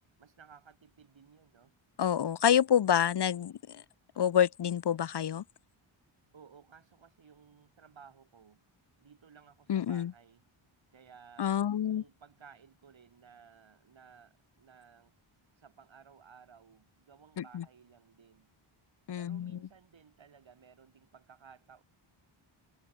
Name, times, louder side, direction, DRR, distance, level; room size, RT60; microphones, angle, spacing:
voice 1, 0.2-1.8 6.3-8.7 9.0-10.5 10.9-15.1 15.6-18.5 19.2-21.8, right 6 dB, 65° right, 6.0 m, -57 dB
voice 2, 2.0-3.5 4.2-5.4 9.7-10.1 11.4-12.0 17.5-17.6 19.1-19.5, left 9 dB, 55° left, 0.7 m, -27 dB
wide cardioid pair, 135°, 49 cm